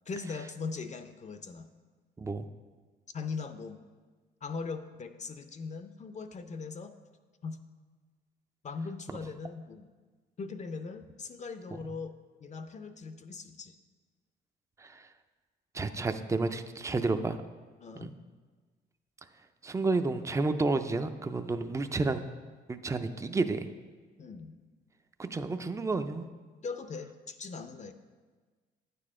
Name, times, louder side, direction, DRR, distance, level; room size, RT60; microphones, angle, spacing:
voice 1, 0.1-1.7 3.1-3.8 4.4-6.9 7.4-7.6 8.6-9.9 10.4-12.2 12.4-13.7 17.8-18.1 24.2-24.6 26.6-27.9, left 4 dB, 35° left, 9 dB, 0.5 m, -40 dB
voice 2, 15.7-17.4 18.0-18.1 19.6-22.2 22.7-23.7 25.2-26.2, right 3 dB, 15° right, 9 dB, 0.4 m, -30 dB
9.2 x 6.8 x 3.7 m, 1.4 s
cardioid pair, 90°, 20 cm